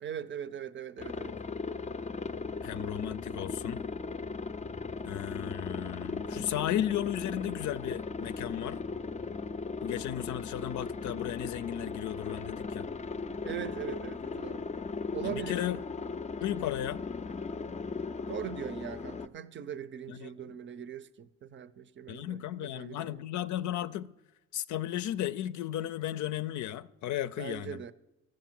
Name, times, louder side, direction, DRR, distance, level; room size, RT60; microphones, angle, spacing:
voice 1, 0.0-1.4 13.4-14.7 15.1-15.6 18.3-23.2 27.4-27.9, right 8 dB, 40° right, 0.6 m, -40 dB
Aircraft, 1.0-19.3, left 4 dB, 25° left, 0.5 m, -38 dB
voice 2, 2.6-3.8 5.1-8.8 9.8-12.9 15.2-15.8 16.4-17.0 20.1-20.3 22.1-24.1 24.5-27.8, left 12 dB, 75° left, 0.5 m, -34 dB
13.0 x 7.6 x 7.5 m
cardioid pair, 90°, 30 cm